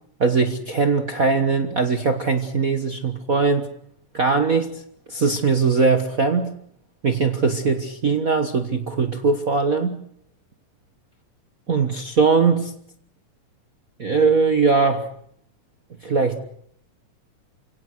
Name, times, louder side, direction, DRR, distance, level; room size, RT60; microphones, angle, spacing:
voice 1, 0.2-3.7 4.1-4.8 5.1-6.5 7.0-10.0 11.7-12.7 14.0-15.1 16.0-16.4, right 4 dB, 75° right, 7 dB, 0.7 m, -20 dB
29.0 x 17.0 x 8.0 m, 0.70 s
omnidirectional pair, 3.8 m